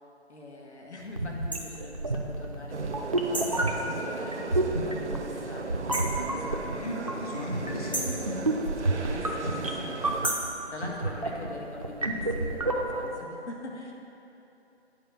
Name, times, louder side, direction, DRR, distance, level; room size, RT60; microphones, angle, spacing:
voice 1, 0.3-6.8 8.8-13.9, left 2 dB, 80° left, -1 dB, 1.7 m, -43 dB
sound 1, 1.1-13.2, right 2 dB, 30° right, 0.4 m, -31 dB
sound 2, 1.5-1.7 3.3-3.6 5.9-6.2 7.9-8.2 10.2-10.5, right 1 dB, 20° left, 0.5 m, -32 dB
sound 3, 2.7-10.3, right 3 dB, 90° right, 0.8 m, -36 dB
voice 2, 6.8-8.6, left 1 dB, 35° left, -2 dB, 0.9 m, -37 dB
9.4 x 4.7 x 6.8 m, 2.9 s
figure-of-eight pair, 160°, 34 cm